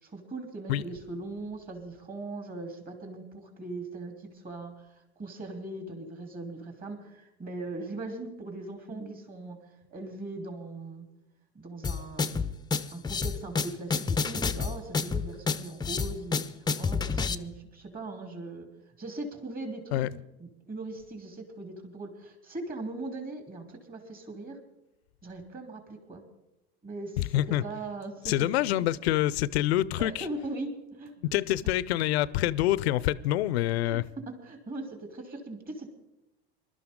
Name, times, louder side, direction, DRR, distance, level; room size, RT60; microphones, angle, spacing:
voice 1, 0.0-4.9 5.2-9.6 9.9-11.1 11.5-12.5 12.9-18.7 19.0-20.1 20.4-24.6 25.2-26.2 26.8-28.5 28.7-28.8 30.0-31.1 33.8-35.9, right 2 dB, 30° right, 3.3 m, -40 dB
sound 1, 11.8-17.3, left 5 dB, 15° left, 0.6 m, -29 dB
voice 2, 27.2-27.6 28.3-30.3 31.3-34.0, left 14 dB, 80° left, 0.6 m, -26 dB
22.0 x 12.5 x 3.7 m
hypercardioid pair, 95°, 31 cm